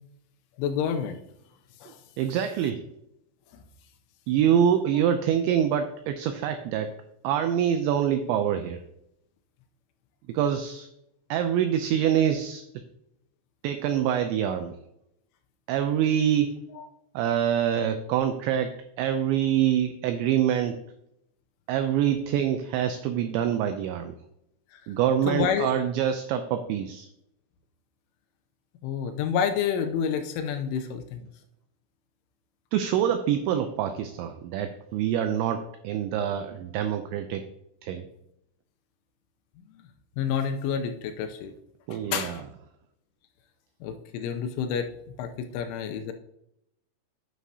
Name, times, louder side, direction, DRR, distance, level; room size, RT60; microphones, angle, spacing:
voice 1, 0.6-1.2 1.8-2.0 24.7-24.8 25.3-25.8 28.8-31.3 40.2-41.5 41.9-42.4 43.8-44.9 45.2-46.1, left 7 dB, 80° left, 6 dB, 3.0 m, -29 dB
voice 2, 2.2-2.8 4.3-6.9 7.2-8.8 10.3-10.9 11.3-12.6 13.6-14.8 15.7-16.6 17.1-20.8 21.7-24.2 24.9-27.1 32.7-37.4 37.8-38.1 41.9-42.4, right 9 dB, 90° right, 7 dB, 2.6 m, -25 dB
9.4 x 9.3 x 2.8 m, 0.79 s
omnidirectional pair, 5.9 m